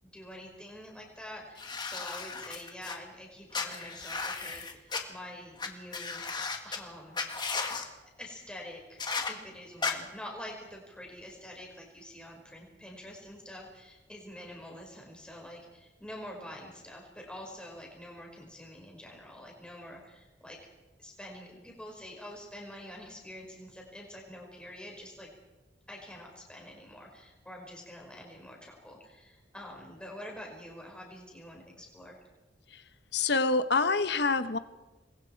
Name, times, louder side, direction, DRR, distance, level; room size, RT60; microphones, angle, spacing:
voice 1, 0.0-6.3 6.6-7.2 8.2-20.6 21.0-25.3 25.9-32.2, left 1 dB, 5° left, -1 dB, 5.5 m, -46 dB
sound 1, 1.6-3.0 3.5-5.0 5.6-5.7 5.9-6.8 7.1-7.9 9.0-9.3 9.8-9.9, left 4 dB, 25° left, 1.9 m, -34 dB
voice 2, 33.1-34.6, left 3 dB, 60° left, 11 dB, 1.2 m, -26 dB
28.0 x 22.5 x 4.7 m, 1.1 s
head